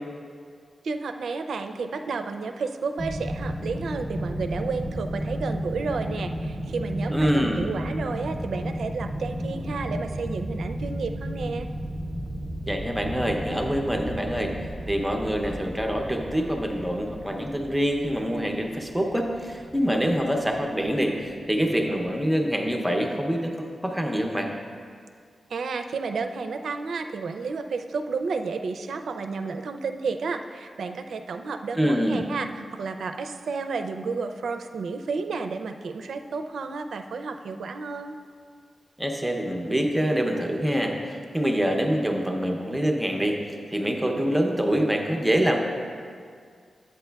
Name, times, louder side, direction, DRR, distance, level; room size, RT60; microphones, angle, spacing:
voice 1, 0.8-11.7 25.5-38.2, right 4 dB, 80° right, 7 dB, 0.4 m, -31 dB
sound 1, 3.0-22.1, equal, 30° left, 0.8 m, -34 dB
voice 2, 7.1-7.6 12.7-14.5 14.9-24.5 31.8-32.3 39.0-45.6, equal, 5° right, 2 dB, 0.6 m, -25 dB
11.5 x 8.3 x 2.2 m, 2.1 s
wide cardioid pair, 175°, 0 cm